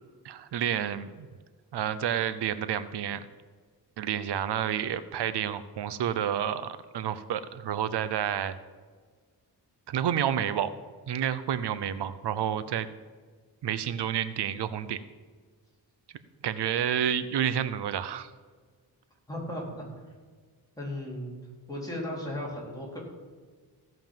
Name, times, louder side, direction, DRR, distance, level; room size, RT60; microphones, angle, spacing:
voice 1, 0.2-1.3 1.7-3.2 4.0-8.5 9.9-10.7 11.1-12.9 13.6-15.0 16.4-18.3, right 9 dB, 90° right, 13 dB, 0.7 m, -29 dB
voice 2, 19.3-19.8 20.8-21.4 21.7-23.0, left 1 dB, 10° left, -4 dB, 3.8 m, -35 dB
16.0 x 5.6 x 7.3 m, 1.5 s
wide cardioid pair, 145°, 40 cm